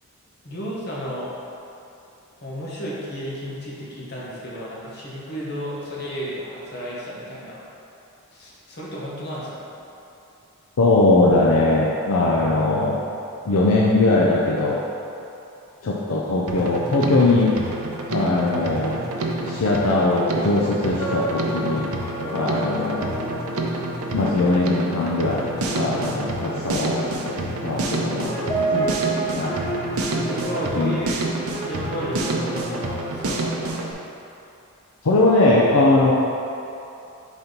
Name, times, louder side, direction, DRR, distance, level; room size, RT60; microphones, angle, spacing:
voice 1, 0.4-1.3 2.4-7.6 8.3-9.6 30.1-31.3 31.7-34.0, equal, 50° left, -7 dB, 1.3 m, -32 dB
voice 2, 10.8-13.0 13.5-14.8 15.8-17.6 18.1-19.0 19.4-21.9 22.3-23.1 24.1-29.6 30.8-31.0 35.0-36.1, left 2 dB, 75° left, -4 dB, 0.5 m, -20 dB
Drum kit, 16.5-33.9, right 2 dB, 75° right, 0.6 m, -28 dB
sound 1, 18.6-28.0 28.2-32.9, right 2 dB, 15° left, 0.7 m, -32 dB
4.4 x 4.1 x 5.2 m, 2.8 s
head